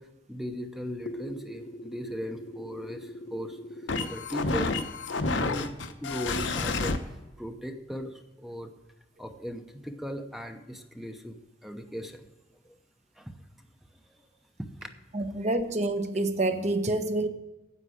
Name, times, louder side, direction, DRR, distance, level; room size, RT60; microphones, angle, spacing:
voice 1, 0.0-4.7 5.4-8.7 9.2-12.3 12.6-12.8 13.2-13.4 13.9-14.3 14.6-14.9, equal, ahead, 0.7 m, -38 dB
sound 1, 1.1-7.0, left 3 dB, 75° left, 0.9 m, -32 dB
voice 2, 15.1-17.3, right 2 dB, 35° right, 0.9 m, -27 dB
9.6 x 8.2 x 6.3 m
head